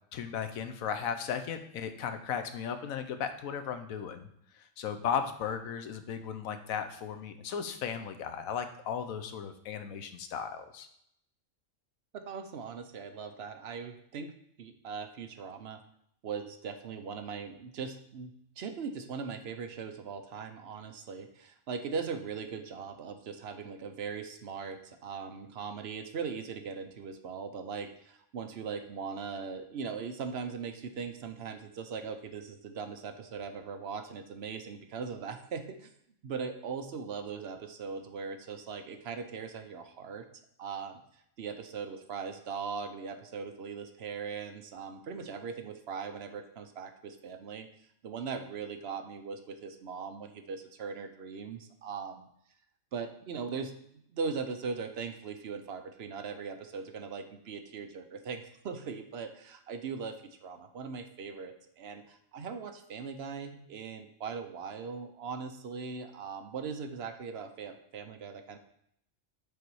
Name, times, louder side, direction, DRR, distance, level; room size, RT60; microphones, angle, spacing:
voice 1, 0.1-4.3 4.5-10.9, left 7 dB, 85° left, 8 dB, 1.1 m, -36 dB
voice 2, 12.1-14.3 14.6-15.8 16.2-35.9 36.2-40.3 40.6-41.0 41.4-47.7 48.0-52.3 52.9-53.7 54.1-68.6, right 5 dB, 60° right, 7 dB, 0.8 m, -40 dB
6.8 x 4.0 x 4.7 m, 0.71 s
omnidirectional pair, 1.4 m